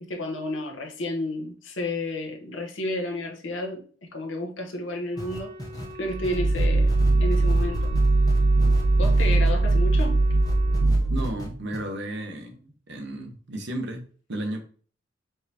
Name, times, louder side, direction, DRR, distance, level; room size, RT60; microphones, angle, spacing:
voice 1, 0.0-5.5 6.0-6.9 7.2-7.9 9.0-10.2, left 1 dB, 75° left, 1.0 m, -31 dB
Wind instrument woodwind instrument, 5.1-10.9, right 1 dB, 25° right, 0.8 m, -42 dB
sound 1, 5.2-10.1 10.4-11.5 11.7-11.8, left 1 dB, 20° left, 0.8 m, -37 dB
sound 2, 6.1-11.5, right 2 dB, 90° right, 0.5 m, -21 dB
voice 2, 11.1-14.0 14.3-14.6, right 1 dB, 65° right, 0.9 m, -33 dB
4.6 x 3.4 x 2.8 m
head